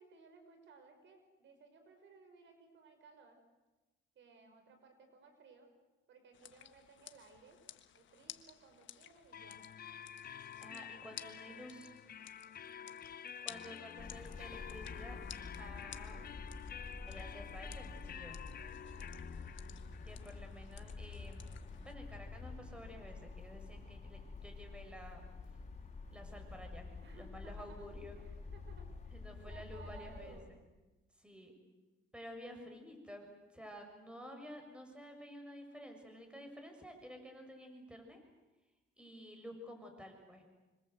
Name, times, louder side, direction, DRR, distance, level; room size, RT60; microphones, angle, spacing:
voice 1, 0.0-3.4 4.2-5.7 6.1-7.6 7.9-9.6 12.8-13.3 16.7-17.7 18.5-19.5 27.0-27.8 28.1-29.2 29.5-30.5, right 4 dB, 70° right, 6 dB, 5.6 m, -60 dB
sound 1, 6.3-21.9, left 11 dB, 70° left, 1.5 m, -56 dB
sound 2, 9.3-22.9, left 8 dB, 50° left, 0.8 m, -51 dB
voice 2, 10.6-11.9 13.4-15.2 15.6-16.3 17.0-18.4 20.0-25.2 26.1-26.9 27.1-28.2 29.1-30.6 31.2-31.5 32.1-38.2 39.0-40.5, equal, 5° right, 4 dB, 6.8 m, -51 dB
sound 3, 14.0-30.4, left 4 dB, 35° left, 5.5 m, -48 dB
26.5 x 26.0 x 8.0 m, 1.1 s
cardioid pair, 90°, 20 cm